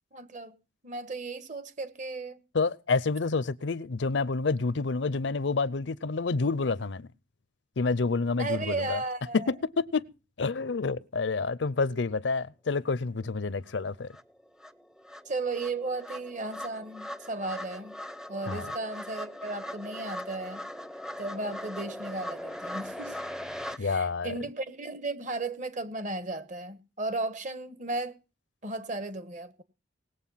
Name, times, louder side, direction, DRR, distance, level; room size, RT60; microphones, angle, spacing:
voice 1, 0.1-0.5 0.8-2.4 8.4-9.5 15.2-18.0 18.3-20.6 21.2-23.2 23.8-28.2 28.6-29.6, right 2 dB, 40° right, 1.4 m, -35 dB
voice 2, 2.5-7.1 7.8-9.0 9.3-10.1 10.4-14.1 18.5-18.7 23.8-24.3, left 4 dB, 70° left, 0.6 m, -28 dB
sound 1, 13.7-13.8 14.1-23.8, left 1 dB, 5° right, 0.6 m, -40 dB
19.5 x 7.9 x 5.7 m
head